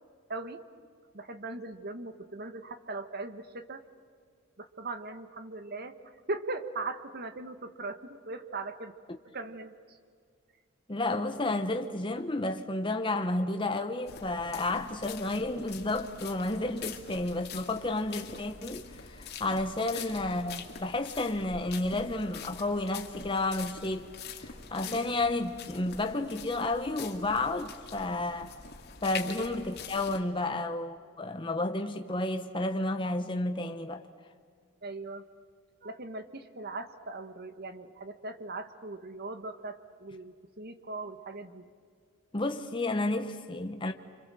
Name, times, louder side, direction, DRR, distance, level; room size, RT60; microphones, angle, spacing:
voice 1, 0.3-0.6 1.1-3.8 4.6-8.9 9.3-10.0 24.8-25.1 29.2-29.4 34.8-35.2 35.8-41.7, right 3 dB, 45° right, 1.5 m, -39 dB
voice 2, 10.9-24.1 24.4-28.5 29.0-34.0 42.3-43.9, left 2 dB, 25° left, 1.0 m, -31 dB
sound 1, 14.1-30.2, left 6 dB, 50° left, 2.4 m, -44 dB
29.5 x 26.0 x 7.7 m
head